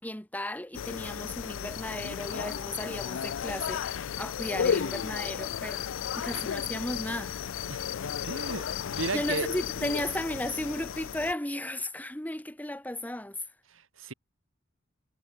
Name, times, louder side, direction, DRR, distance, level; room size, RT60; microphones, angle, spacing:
voice 1, 0.0-5.8 6.2-7.4 9.1-13.4, left 1 dB, 10° left, 1.3 m, -35 dB
sound 1, 0.7-11.3, left 8 dB, 70° left, 0.4 m, -34 dB
voice 2, 7.7-9.5 13.7-14.1, right 3 dB, 80° right, 2.3 m, -35 dB
head